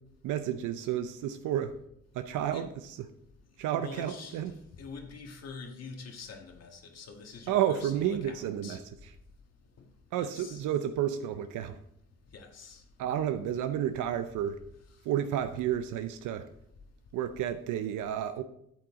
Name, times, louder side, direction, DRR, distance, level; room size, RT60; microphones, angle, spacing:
voice 1, 0.2-1.7 2.1-3.0 3.6-4.5 7.5-8.8 10.1-11.8 13.0-14.6 15.0-16.5 17.1-18.4, right 10 dB, 85° right, 9 dB, 0.6 m, -31 dB
voice 2, 3.7-4.4 4.8-8.8 10.2-10.6 12.3-12.8, left 4 dB, 55° left, 3 dB, 1.6 m, -45 dB
9.0 x 7.7 x 3.7 m, 0.75 s
cardioid pair, 90°, 30 cm